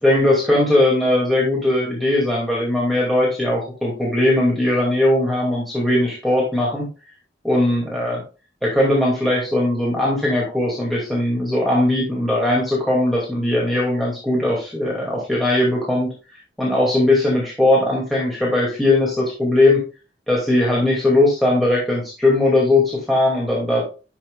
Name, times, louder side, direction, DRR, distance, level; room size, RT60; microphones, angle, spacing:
voice 1, 0.0-6.9 7.4-8.2 8.6-19.9 20.3-23.8, left 1 dB, ahead, -6 dB, 2.3 m, -19 dB
11.5 x 6.0 x 2.3 m, 0.34 s
head